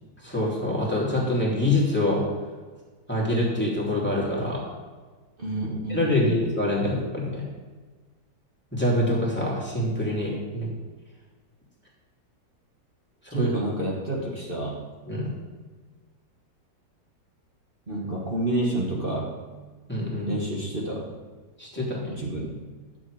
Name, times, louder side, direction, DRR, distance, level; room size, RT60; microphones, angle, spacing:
voice 1, 0.2-2.2 3.1-4.6 5.9-7.4 8.7-10.7 13.2-13.5 15.1-15.3 19.9-20.3 21.6-22.1, left 1 dB, 5° left, -5 dB, 2.8 m, -25 dB
voice 2, 5.4-6.5 13.3-14.8 17.9-19.4 20.2-21.1 22.1-22.6, right 1 dB, 30° right, -3 dB, 1.7 m, -29 dB
11.5 x 7.5 x 4.9 m, 1.3 s
omnidirectional pair, 1.9 m